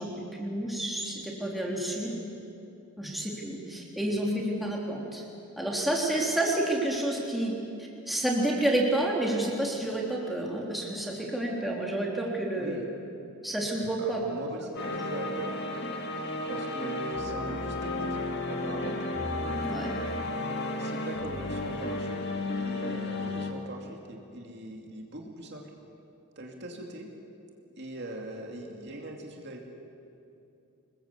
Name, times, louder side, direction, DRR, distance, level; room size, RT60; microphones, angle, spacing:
voice 1, 0.0-2.1 3.0-5.3 5.6-7.5 7.8-12.8 13.4-14.2 19.6-19.9, right 1 dB, ahead, -3 dB, 3.5 m, -29 dB
voice 2, 12.5-12.9 14.0-15.6 16.5-18.2 18.5-19.0 20.8-22.2 22.5-25.7 26.4-27.1 27.8-29.7, right 1 dB, 50° right, 0 dB, 2.6 m, -41 dB
sound 1, 14.8-23.5, left 2 dB, 50° left, 2.3 m, -33 dB
26.5 x 21.0 x 8.3 m, 2.8 s
head